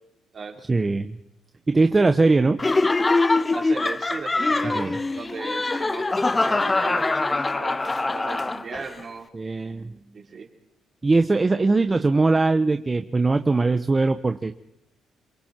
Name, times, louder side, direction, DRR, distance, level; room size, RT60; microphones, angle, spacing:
voice 1, 0.7-1.2 1.7-2.6 4.7-5.0 9.3-9.9 11.0-14.5, right 3 dB, 25° right, 8 dB, 1.0 m, -21 dB
Laughter, 2.6-8.9, left 3 dB, 20° left, 0.7 m, -23 dB
voice 2, 3.5-9.3 10.1-10.5, right 5 dB, 45° right, 2 dB, 4.7 m, -37 dB
28.0 x 23.0 x 4.5 m, 0.83 s
cardioid pair, 90°, 0 cm